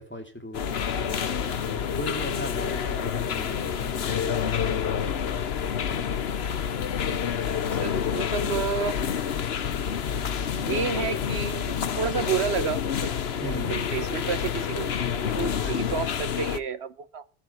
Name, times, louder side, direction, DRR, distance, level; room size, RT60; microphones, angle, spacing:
voice 1, 0.0-4.6 13.4-13.7 15.6-16.0, equal, 10° left, 4 dB, 2.8 m, -39 dB
sound 1, 0.5-16.6, left 8 dB, 80° left, 1.1 m, -28 dB
sound 2, 1.7-16.1, right 2 dB, 70° right, 4.6 m, -52 dB
voice 2, 7.8-8.9 10.6-13.1 13.4-17.2, right 7 dB, 85° right, 12 dB, 1.4 m, -31 dB
15.5 x 7.1 x 9.5 m, 0.38 s
omnidirectional pair, 1.1 m